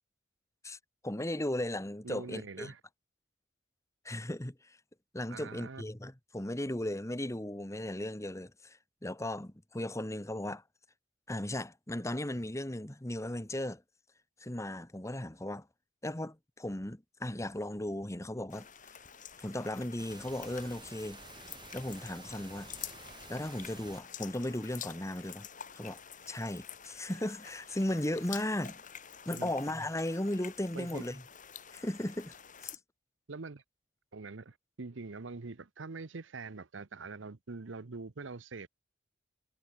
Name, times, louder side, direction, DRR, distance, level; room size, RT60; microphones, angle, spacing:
voice 1, 1.0-2.7 4.0-4.8 5.1-10.6 11.3-13.8 14.4-15.7 16.0-18.7 19.4-21.2 21.7-22.7 23.3-25.5 25.7-26.0 26.3-28.8 29.2-31.2 31.7-32.3 32.6-32.8, left 1 dB, 15° left, 1.4 m, -36 dB
voice 2, 2.0-2.8 5.3-5.9 29.3-29.5 30.7-31.0 33.3-33.6 34.1-38.7, right 3 dB, 75° right, 0.9 m, -44 dB
sound 1, 18.5-32.8, left 8 dB, 45° left, 4.7 m, -48 dB
sound 2, 20.0-24.0, right 4 dB, 25° right, 3.7 m, -51 dB
head